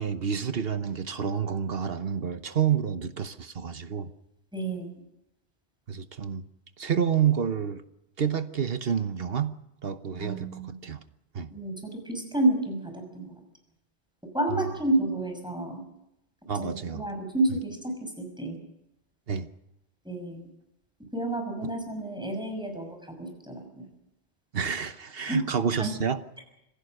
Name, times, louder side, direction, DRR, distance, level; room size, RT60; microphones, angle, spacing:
voice 1, 0.0-4.1 5.9-6.5 6.8-7.8 8.2-9.5 9.8-11.0 11.3-11.5 14.5-14.7 16.5-17.1 19.3-19.5 21.6-21.7 24.5-26.2, right 7 dB, 65° right, 11 dB, 1.2 m, -29 dB
voice 2, 4.5-4.9 10.2-10.8 11.5-13.3 14.3-15.8 16.6-18.1 18.4-18.6 20.0-20.4 21.1-23.9 25.3-25.4 25.8-25.9, right 2 dB, 5° right, 3 dB, 6.2 m, -30 dB
26.0 x 16.5 x 6.5 m, 0.85 s
omnidirectional pair, 1.1 m